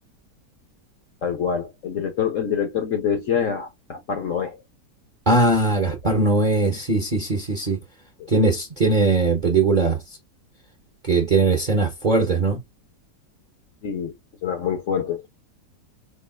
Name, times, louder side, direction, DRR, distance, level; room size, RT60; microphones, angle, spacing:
voice 1, 1.2-4.6 5.9-6.0 8.2-8.3 13.8-14.1 14.4-15.3, left 7 dB, 55° left, 1.0 m, -26 dB
voice 2, 5.3-7.8 8.3-10.0 11.0-12.6, right 3 dB, 40° right, 0.7 m, -20 dB
4.5 x 2.5 x 2.3 m
omnidirectional pair, 1.9 m